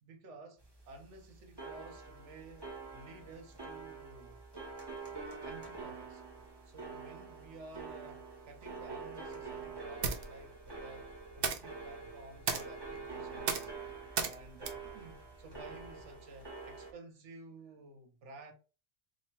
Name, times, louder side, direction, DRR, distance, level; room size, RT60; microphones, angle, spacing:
voice 1, 0.0-0.6 0.9-4.4 5.2-6.2 6.6-13.7 14.2-18.5, right 3 dB, 80° right, 1.1 m, -53 dB
sound 1, 0.6-16.9, right 4 dB, 25° right, 0.8 m, -46 dB
sound 2, 9.3-16.1, right 5 dB, 60° right, 0.8 m, -40 dB
3.0 x 2.8 x 4.3 m
omnidirectional pair, 1.2 m